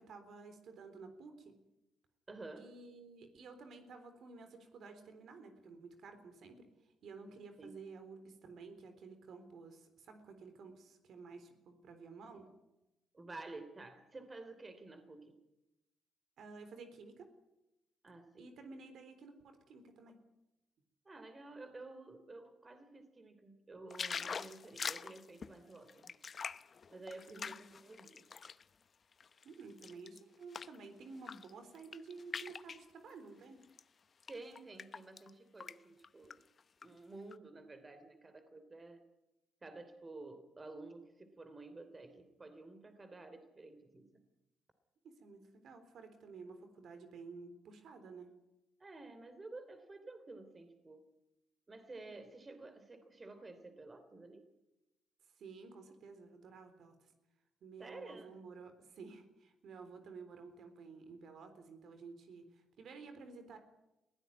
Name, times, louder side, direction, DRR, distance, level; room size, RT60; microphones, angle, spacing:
voice 1, 0.0-1.5 2.6-6.7 7.0-12.5 16.4-17.3 18.4-20.2 27.3-27.5 29.4-33.6 45.0-48.3 55.4-57.1 57.6-63.6, right 4 dB, 65° right, 8 dB, 3.8 m, -52 dB
voice 2, 2.3-2.7 7.6-7.7 13.1-15.4 18.0-18.5 21.0-26.2 26.9-28.3 34.3-36.4 36.8-39.0 39.6-44.2 48.8-51.0 51.7-54.4 57.8-58.4, right 2 dB, 25° right, 10 dB, 3.1 m, -51 dB
sound 1, 23.9-28.6 29.1-30.8 31.2-31.5 31.7-32.8 33.6-33.8 34.2-35.3 35.6-35.8 36.0-36.9 37.3-37.4, left 6 dB, 40° left, 0.8 m, -44 dB
21.5 x 16.0 x 9.5 m, 0.94 s
cardioid pair, 90°, 0 cm